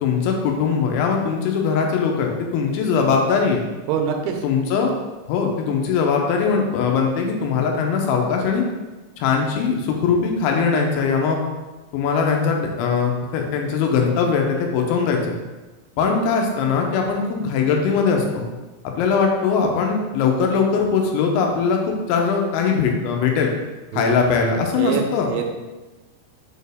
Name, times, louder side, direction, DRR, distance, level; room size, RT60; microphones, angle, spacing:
voice 1, 0.0-3.6 4.4-4.9 5.3-8.6 9.2-11.4 11.9-15.3 16.0-18.4 18.8-23.5 23.9-25.3, left 5 dB, 85° left, 1 dB, 3.2 m, -21 dB
voice 2, 3.9-4.4 23.9-24.1 24.8-25.0 25.3-25.5, right 7 dB, 85° right, 3 dB, 3.0 m, -24 dB
7.1 x 4.5 x 3.5 m, 1.2 s
omnidirectional pair, 5.3 m